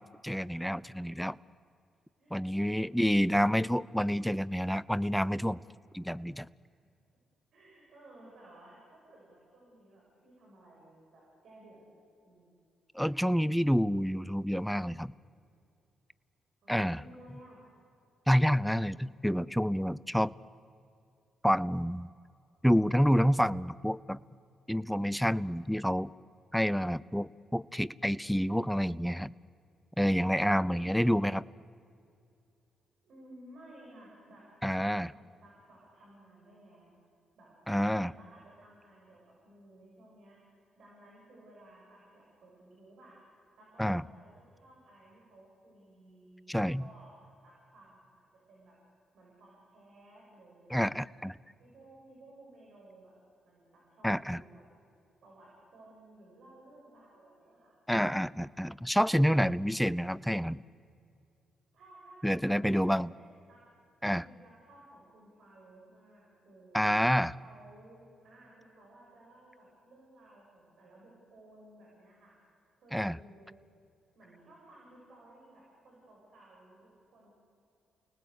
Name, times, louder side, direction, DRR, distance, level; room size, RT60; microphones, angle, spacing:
voice 1, 0.0-1.4 2.3-5.6 5.9-6.5 12.9-15.1 16.7-17.0 18.3-20.3 21.4-22.1 22.6-24.2 24.7-26.1 26.5-29.3 30.0-31.4 34.6-35.1 37.7-38.1 43.8-44.0 46.5-46.8 50.7-51.4 54.0-54.4 57.9-60.6 62.2-63.1 64.0-64.2 66.7-67.4 72.9-73.2, equal, ahead, 20 dB, 0.6 m, -28 dB
voice 2, 2.2-3.6 6.7-6.8 7.5-11.8 12.2-12.5 16.6-17.6 33.0-37.0 37.4-37.5 38.0-43.2 43.6-48.7 49.1-50.8 51.6-53.2 53.4-54.6 55.2-57.7 61.7-63.2 63.5-63.6 64.0-66.8 67.4-72.3 72.8-73.6 74.1-77.3, right 1 dB, 70° right, -4 dB, 7.8 m, -57 dB
29.0 x 19.5 x 8.4 m, 2.5 s
supercardioid pair, 50°, 0 cm